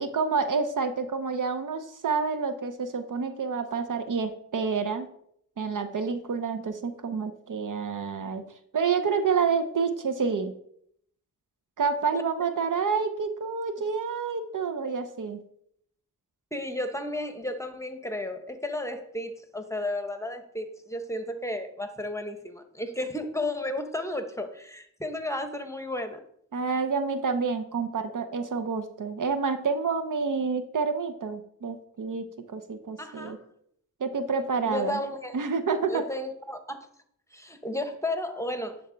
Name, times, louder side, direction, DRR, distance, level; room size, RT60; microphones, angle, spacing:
voice 1, 0.0-5.1 5.6-8.4 8.7-10.5 11.8-15.4 26.5-33.4 34.0-35.0 35.3-36.0, right 5 dB, 70° right, 9 dB, 0.7 m, -28 dB
voice 2, 16.5-26.2 33.0-33.4 34.6-35.3 35.9-36.8 37.3-38.8, left 1 dB, 10° left, 7 dB, 1.0 m, -33 dB
9.9 x 3.5 x 3.9 m, 0.69 s
cardioid pair, 40°, 33 cm